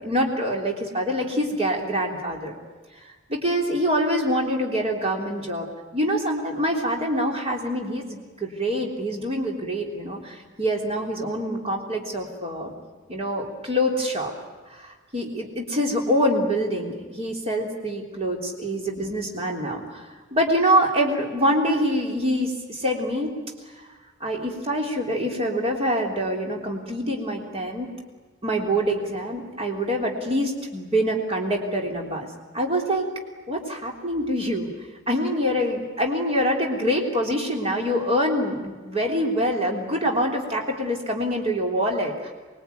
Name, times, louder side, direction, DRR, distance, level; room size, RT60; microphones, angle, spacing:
voice 1, 0.0-2.5 3.3-5.7 5.9-12.7 13.1-14.3 14.7-20.0 20.3-23.3 24.2-27.9 28.4-32.3 32.5-33.1 33.5-34.7 35.1-42.3, equal, 30° right, 0 dB, 3.5 m, -25 dB
24.5 x 22.5 x 9.4 m, 1.4 s
head